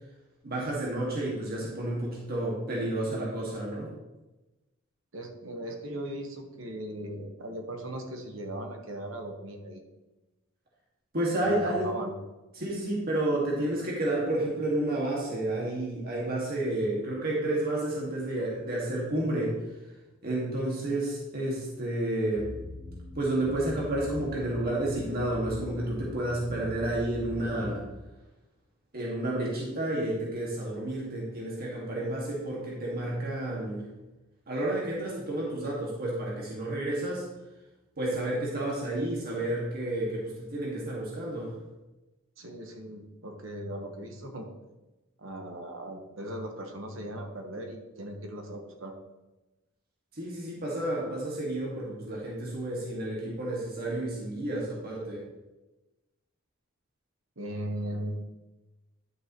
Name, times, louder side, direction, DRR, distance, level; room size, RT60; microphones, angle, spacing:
voice 1, 0.4-3.9 11.1-11.9 12.5-19.5 20.2-22.5 23.2-27.8 28.9-33.8 34.5-37.3 38.0-41.5 50.1-55.2, right 1 dB, 50° right, -4 dB, 2.0 m, -30 dB
voice 2, 5.1-9.8 11.3-12.1 42.4-44.5 45.2-48.9 57.4-58.2, right 1 dB, 75° right, 3 dB, 1.3 m, -38 dB
sound 1, 22.4-27.8, left 1 dB, 5° left, 1.8 m, -42 dB
11.0 x 6.3 x 3.1 m, 1.1 s
head